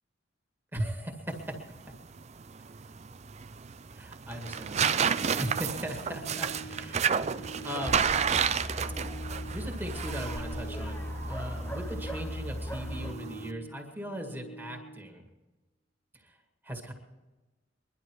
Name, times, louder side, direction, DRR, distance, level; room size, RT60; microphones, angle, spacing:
voice 1, 0.7-1.1 3.9-7.1 7.3-8.1 9.5-15.2 16.1-16.4 16.6-16.9, equal, 10° right, 2 dB, 2.0 m, -38 dB
sound 1, 1.3-13.5, right 7 dB, 35° right, 0.5 m, -32 dB
Organ, 4.2-15.2, right 2 dB, 60° left, 2.3 m, -47 dB
sound 2, 7.9-13.1, left 1 dB, 10° left, 0.7 m, -37 dB
22.5 x 11.5 x 4.7 m, 1.2 s
head